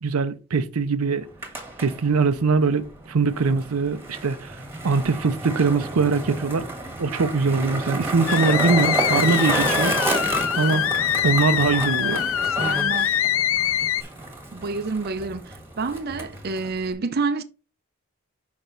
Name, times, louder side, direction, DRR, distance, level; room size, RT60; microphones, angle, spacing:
voice 1, 0.0-1.3 1.8-4.6 4.8-6.7 7.0-10.0 10.6-12.2, right 4 dB, 90° right, 0.6 m, -22 dB
Skateboard, 1.2-16.9, right 2 dB, 10° right, 1.4 m, -30 dB
sound 1, 8.3-14.0, left 10 dB, 70° left, 0.5 m, -24 dB
voice 2, 11.9-13.1 14.5-17.4, right 4 dB, 45° right, 0.5 m, -29 dB
6.2 x 5.3 x 3.9 m
head